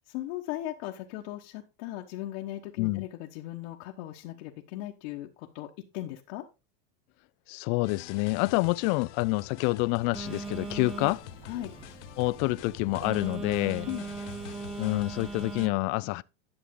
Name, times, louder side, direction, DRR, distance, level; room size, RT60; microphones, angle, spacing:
voice 1, 0.1-6.4 11.4-11.7 13.8-14.0, left 14 dB, 60° left, 1.3 m, -38 dB
voice 2, 7.5-11.2 12.2-13.9 14.8-16.2, left 23 dB, 45° left, 0.4 m, -27 dB
sound 1, 7.8-15.7, left 14 dB, 85° left, 0.8 m, -46 dB
Telephone, 10.1-15.7, right 4 dB, 15° right, 1.0 m, -39 dB
11.0 x 6.4 x 3.7 m
supercardioid pair, 135°, 34 cm